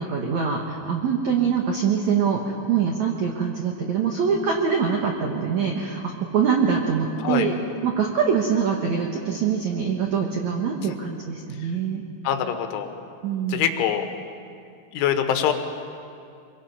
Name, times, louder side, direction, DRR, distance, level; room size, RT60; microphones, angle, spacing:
voice 1, 0.0-12.0 13.2-13.6, right 6 dB, 75° right, 1 dB, 1.6 m, -24 dB
voice 2, 12.3-12.9 13.5-14.1 14.9-15.5, left 9 dB, 85° left, 6 dB, 3.7 m, -24 dB
24.0 x 23.0 x 5.5 m, 2.4 s
omnidirectional pair, 5.4 m